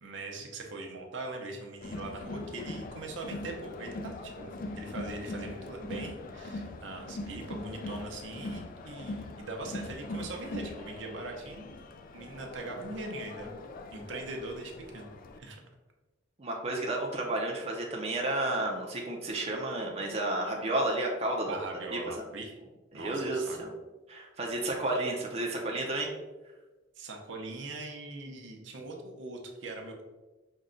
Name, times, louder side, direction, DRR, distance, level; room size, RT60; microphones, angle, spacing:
voice 1, 0.0-11.7 12.1-13.5 13.9-15.1 15.4-15.6 21.5-22.5 22.9-23.6 27.0-30.0, right 2 dB, 70° right, 2 dB, 0.7 m, -41 dB
Crowd, 1.8-15.4, left 2 dB, 50° left, 0.4 m, -41 dB
voice 2, 16.4-21.6 21.9-22.0 22.9-23.7 24.1-26.1, right 2 dB, 35° right, -1 dB, 0.6 m, -31 dB
5.3 x 2.3 x 3.7 m, 1.2 s
head